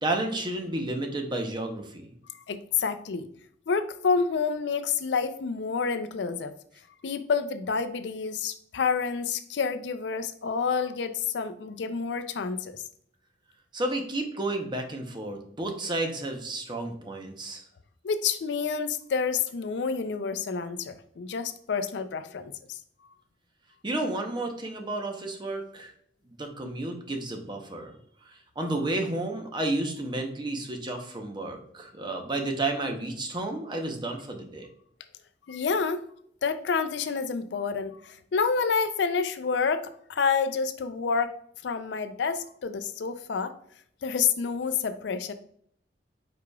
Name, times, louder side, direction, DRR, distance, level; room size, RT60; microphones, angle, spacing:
voice 1, 0.0-2.1 13.7-17.6 23.8-25.9 26.3-27.9 28.6-34.7, right 2 dB, 25° right, 4 dB, 0.7 m, -31 dB
voice 2, 2.5-3.3 3.7-6.5 7.0-12.8 18.0-22.8 35.5-36.0 36.4-41.4 41.6-43.5 44.0-45.3, left 5 dB, 70° left, 11 dB, 0.4 m, -28 dB
4.8 x 4.8 x 2.3 m, 0.65 s
head